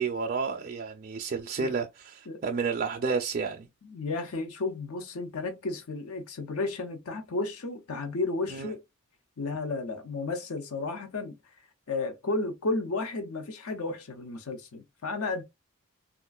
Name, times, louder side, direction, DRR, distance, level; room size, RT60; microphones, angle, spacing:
voice 1, 0.0-3.7 8.5-8.7, right 5 dB, 40° right, 0.3 m, -31 dB
voice 2, 3.8-8.8 9.4-11.4 11.9-15.4, left 3 dB, 75° left, 0.6 m, -33 dB
3.6 x 2.4 x 2.2 m
head